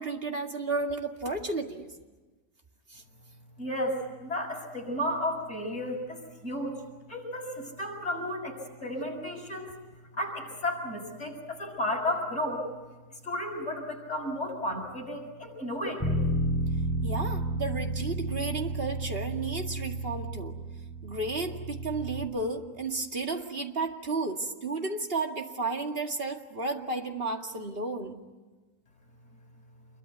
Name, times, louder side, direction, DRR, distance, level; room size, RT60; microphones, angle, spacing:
voice 1, 0.0-1.9 2.9-3.0 17.0-20.6 21.0-28.2, right 3 dB, 35° right, 3 dB, 2.3 m, -33 dB
voice 2, 3.6-6.7 7.1-9.7 10.1-12.7 13.2-16.2, left 1 dB, 45° left, 0 dB, 7.1 m, -33 dB
Bass guitar, 16.0-22.3, right 1 dB, 10° left, 4.5 m, -32 dB
28.0 x 22.5 x 9.3 m, 1.3 s
omnidirectional pair, 1.6 m